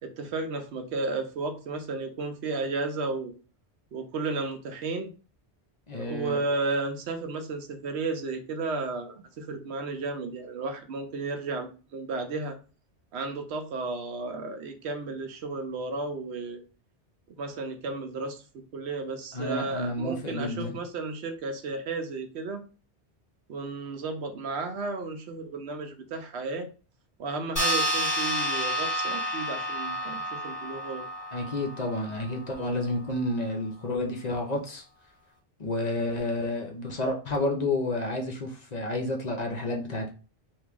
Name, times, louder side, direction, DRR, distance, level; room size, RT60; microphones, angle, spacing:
voice 1, 0.0-3.3 3.9-5.1 6.0-12.6 13.1-16.6 17.4-22.6 23.5-26.7 27.2-31.0, right 3 dB, 85° right, 6 dB, 0.9 m, -33 dB
voice 2, 5.9-6.4 19.3-20.8 31.3-34.8 35.6-40.1, left 2 dB, 45° left, 2 dB, 0.7 m, -30 dB
sound 1, 27.6-32.4, equal, 15° left, 1.7 m, -30 dB
3.0 x 2.6 x 3.5 m, 0.35 s
omnidirectional pair, 1.1 m